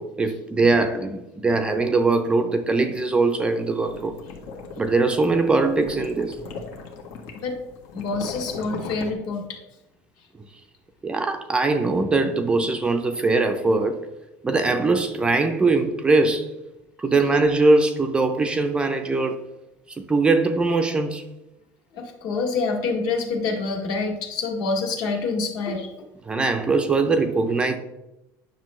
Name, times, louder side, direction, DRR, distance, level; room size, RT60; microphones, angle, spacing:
voice 1, 0.0-4.2 4.8-6.4 11.0-14.1 14.4-16.5 17.0-19.4 19.9-21.2 26.2-27.8, right 3 dB, 10° right, 0.4 m, -21 dB
sound 1, 3.6-9.1, left 4 dB, 80° left, 1.6 m, -38 dB
voice 2, 7.9-9.6 21.9-25.9, left 4 dB, 60° left, 1.9 m, -27 dB
9.5 x 6.6 x 3.1 m
cardioid pair, 170°, 8 cm